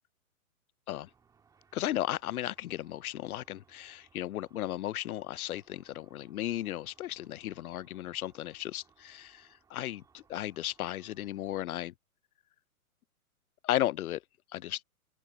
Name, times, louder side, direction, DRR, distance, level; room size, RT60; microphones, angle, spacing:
Car / Traffic noise roadway noise / Engine, 1.0-11.6, right 6 dB, 10° right, 1.7 m, -67 dB
voice 1, 1.7-11.9 13.6-14.2 14.5-14.8, left 13 dB, 75° left, 0.5 m, -35 dB
open air
hypercardioid pair, 150°, 44 cm